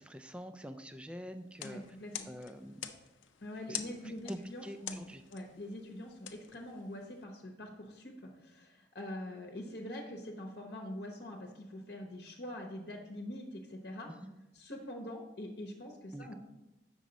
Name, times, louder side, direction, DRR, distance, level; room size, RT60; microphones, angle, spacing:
voice 1, 0.0-1.8 2.3-2.9 3.7-3.8 4.0-5.2 14.1-14.3 16.1-16.3, equal, 5° right, 8 dB, 0.3 m, -46 dB
sound 1, 1.4-7.2, left 10 dB, 85° left, 0.6 m, -47 dB
voice 2, 1.6-2.3 3.4-14.1 14.5-16.4, left 1 dB, 55° left, 2 dB, 0.9 m, -44 dB
7.7 x 6.1 x 4.0 m, 0.99 s
head